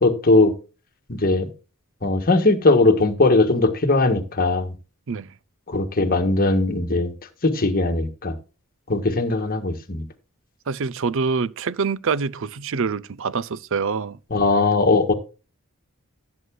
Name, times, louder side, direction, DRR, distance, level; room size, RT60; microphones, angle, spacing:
voice 1, 0.0-0.5 1.1-1.5 2.0-4.7 5.7-7.1 7.4-8.3 8.9-10.0 14.3-15.1, left 2 dB, 40° left, 1.4 m, -19 dB
voice 2, 10.7-14.2, right 5 dB, 60° right, 0.5 m, -25 dB
16.0 x 8.0 x 2.3 m
head